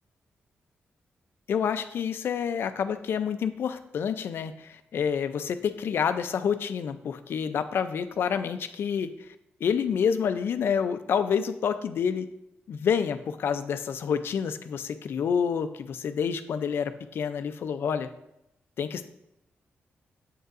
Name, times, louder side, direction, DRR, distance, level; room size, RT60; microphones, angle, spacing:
voice 1, 1.5-9.3 9.6-12.3 12.7-18.1 18.8-19.0, left 7 dB, 65° left, 11 dB, 0.4 m, -28 dB
7.9 x 5.3 x 2.5 m, 0.84 s
wide cardioid pair, 160°, 4 cm